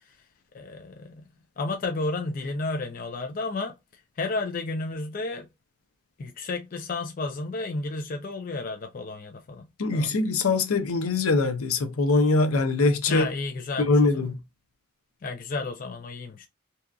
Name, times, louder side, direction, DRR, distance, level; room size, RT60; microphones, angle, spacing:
voice 1, 0.5-1.3 1.6-3.7 4.2-5.5 6.2-10.1 13.1-13.9 15.2-16.5, left 3 dB, 40° left, 0.3 m, -32 dB
voice 2, 9.8-13.3 13.9-14.3, left 3 dB, 80° left, 0.6 m, -22 dB
2.8 x 2.4 x 2.3 m
head